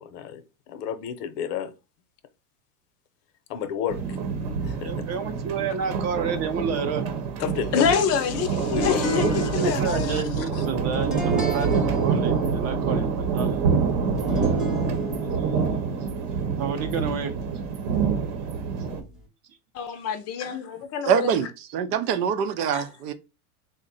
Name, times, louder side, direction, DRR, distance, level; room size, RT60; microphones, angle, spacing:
voice 1, 0.0-1.7 3.5-4.2 4.6-4.9 7.4-7.8 8.7-9.7, left 8 dB, 75° left, 0.7 m, -31 dB
sound 1, 3.9-19.0, right 6 dB, 55° right, 0.9 m, -26 dB
voice 2, 4.8-7.0 9.6-13.6 16.6-17.3, right 6 dB, 35° right, 0.6 m, -30 dB
voice 3, 7.7-10.7 19.7-21.3 22.7-22.9, left 7 dB, 35° left, 0.5 m, -27 dB
sound 2, 8.6-19.3, equal, ahead, 0.8 m, -36 dB
voice 4, 21.1-23.1, right 7 dB, 85° right, 0.7 m, -24 dB
3.8 x 2.1 x 3.9 m
supercardioid pair, 125°, 46 cm